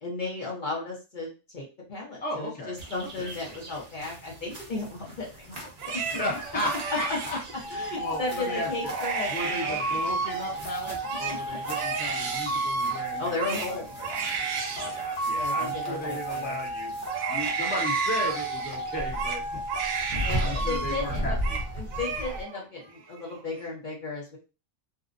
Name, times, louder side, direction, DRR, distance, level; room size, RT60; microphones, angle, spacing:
voice 1, 0.0-5.7 6.9-7.2 7.7-9.8 11.3-11.4 13.2-13.9 15.3-16.6 20.2-21.4 21.8-24.4, left 3 dB, 50° left, -3 dB, 0.8 m, -34 dB
voice 2, 2.2-2.7 3.0-3.3 6.1-7.4 8.0-8.9 9.3-14.1 14.8-16.9 17.3-19.4 20.1-21.6, left 1 dB, 10° left, -2 dB, 0.6 m, -35 dB
sound 1, 2.8-22.4, equal, 45° right, 0.7 m, -39 dB
Crying sobbing, 5.6-7.9 8.4-8.6 8.8-10.5 10.9-16.6 17.0-21.0 21.2-21.6 21.9-22.6 23.0-23.6, right 6 dB, 65° right, 0.8 m, -34 dB
sound 2, 7.6-22.1, right 2 dB, 70° left, 1.0 m, -33 dB
2.5 x 2.0 x 2.5 m, 0.31 s
omnidirectional pair, 1.2 m